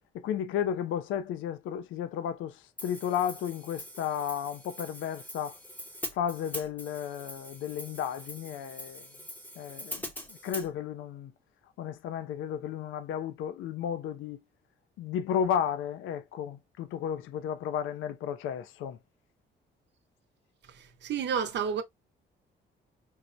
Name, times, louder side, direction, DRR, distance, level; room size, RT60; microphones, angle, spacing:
voice 1, 0.1-5.6 6.1-9.1 9.6-10.1 10.4-11.3 11.8-14.4 15.0-19.0, left 9 dB, 80° left, 0.4 m, -33 dB
Hi-hat, 2.8-10.7, left 1 dB, 10° left, 0.7 m, -43 dB
voice 2, 21.0-21.8, right 7 dB, 60° right, 0.7 m, -29 dB
4.5 x 2.0 x 2.5 m
cardioid pair, 90°, 20 cm